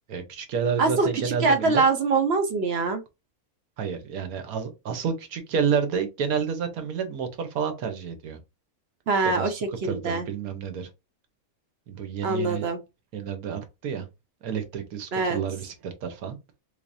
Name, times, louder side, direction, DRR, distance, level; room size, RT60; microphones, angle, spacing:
voice 1, 0.1-1.8 3.8-8.4 9.2-10.9 11.9-12.7 13.1-14.1 14.4-16.4, right 6 dB, 75° right, 1.3 m, -30 dB
voice 2, 0.8-3.0 9.1-10.3 12.2-12.8 15.1-15.4, right 3 dB, 55° right, 0.7 m, -24 dB
3.4 x 3.1 x 2.6 m
omnidirectional pair, 1.6 m